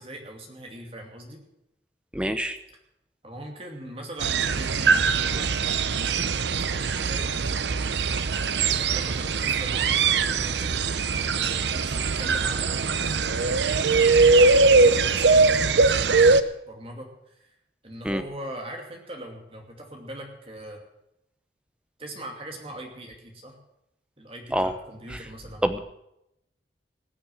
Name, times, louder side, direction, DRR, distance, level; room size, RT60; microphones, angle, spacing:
voice 1, 0.0-1.4 3.2-5.6 6.7-7.8 8.8-10.7 11.3-13.9 14.2-17.5 17.8-20.8 22.0-23.6 24.2-25.8, right 1 dB, 30° right, 2 dB, 2.5 m, -41 dB
voice 2, 2.1-2.6 18.0-18.2 24.5-24.7 25.1-25.2 25.6-25.8, equal, 5° right, 9 dB, 0.8 m, -25 dB
sound 1, 4.2-16.4, right 4 dB, 75° right, 0.7 m, -21 dB
19.0 x 6.9 x 7.7 m, 0.82 s
head